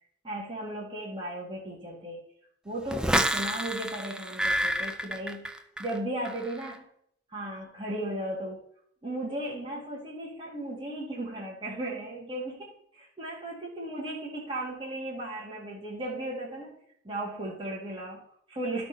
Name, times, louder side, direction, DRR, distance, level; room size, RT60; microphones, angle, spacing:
voice 1, 0.2-2.2 2.6-6.9 7.3-8.6 9.0-16.8 17.0-18.9, right 1 dB, 30° right, -5 dB, 2.0 m, -36 dB
sound 1, 2.9-6.0 6.3-6.7, right 1 dB, 5° right, 0.4 m, -29 dB
11.5 x 4.0 x 5.2 m, 0.66 s
head